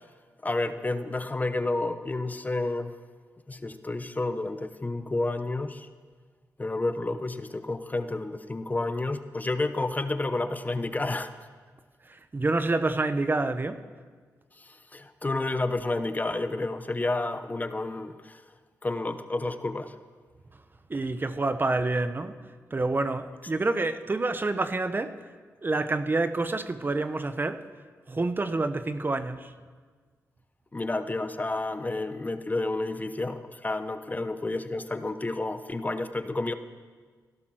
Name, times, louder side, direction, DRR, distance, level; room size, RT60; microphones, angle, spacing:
voice 1, 0.4-2.9 3.5-5.9 6.6-11.3 14.6-18.4 18.8-19.9 30.7-36.5, left 2 dB, 25° left, 0.9 m, -30 dB
voice 2, 12.0-13.8 20.9-22.3 22.7-25.3 25.6-27.6 28.1-29.5, right 2 dB, 30° right, 1.0 m, -28 dB
16.5 x 12.0 x 6.3 m
cardioid pair, 55°, 6 cm